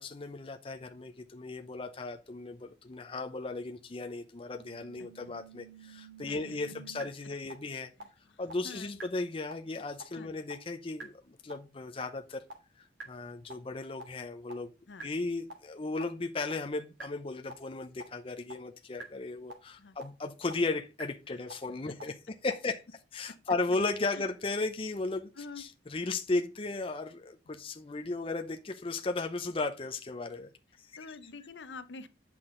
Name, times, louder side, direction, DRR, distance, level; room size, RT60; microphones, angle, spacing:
voice 1, 0.0-7.9 8.4-12.4 12.8-14.7 15.0-22.1 22.4-22.8 23.1-30.5 30.8-30.9, left 3 dB, 30° left, 0.6 m, -36 dB
sound 1, 4.6-7.0 7.5-7.6 8.0-8.1 8.5-8.6 9.0-9.1 9.5-9.6 10.0-10.1 10.5-10.6 11.0-11.1 11.5-11.6 12.0-12.1 12.5-12.6 13.0-13.1 13.5-13.6 14.0-14.1 14.5-14.6 15.0-15.1 15.5-15.6 16.0-16.1 16.5-16.6 17.0-17.1 17.5-17.6 18.0-18.1 18.5-18.6 19.0-19.1 19.5-19.6 20.0-20.1 20.5-20.6 21.0-21.1 21.5-21.6 22.0-22.1 22.5-22.6, right 3 dB, 85° right, 1.8 m, -46 dB
voice 2, 6.2-6.6 8.0-8.9 10.1-10.3 14.9-15.1 19.8-20.0 24.1-24.3 25.4-25.6 31.0-32.1, left 3 dB, 75° left, 0.7 m, -47 dB
7.8 x 6.0 x 3.8 m
head